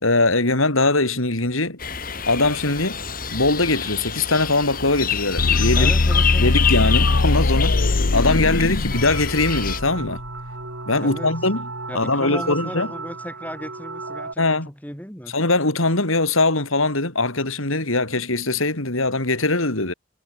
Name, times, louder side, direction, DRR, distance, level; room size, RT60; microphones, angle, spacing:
voice 1, 0.0-1.8 2.3-3.0 3.3-5.9 6.4-10.2 10.9-11.6 11.9-12.9 14.4-14.7 15.3-19.9, left 2 dB, 85° left, 4.7 m, -21 dB
sound 1, 1.8-9.8, left 8 dB, 45° left, 5.3 m, -27 dB
sound 2, 5.4-10.3, left 2 dB, 65° left, 0.9 m, -21 dB
voice 2, 5.8-6.6 11.0-11.3 11.9-15.4, equal, 10° left, 5.0 m, -35 dB
sound 3, 8.9-14.3, right 3 dB, 70° right, 7.8 m, -34 dB
head